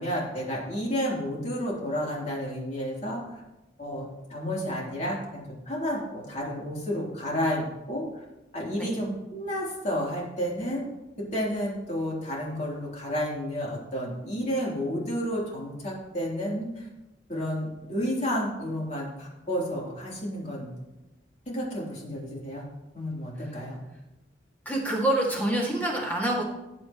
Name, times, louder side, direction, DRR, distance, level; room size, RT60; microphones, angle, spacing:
voice 1, 0.0-3.4 3.8-8.2 8.5-10.9 11.3-16.9 17.3-20.7 21.5-22.6 22.9-23.8, equal, 40° left, -4 dB, 3.4 m, -31 dB
voice 2, 24.7-26.4, right 1 dB, 10° left, -3 dB, 2.2 m, -27 dB
18.0 x 7.4 x 3.1 m, 0.99 s
head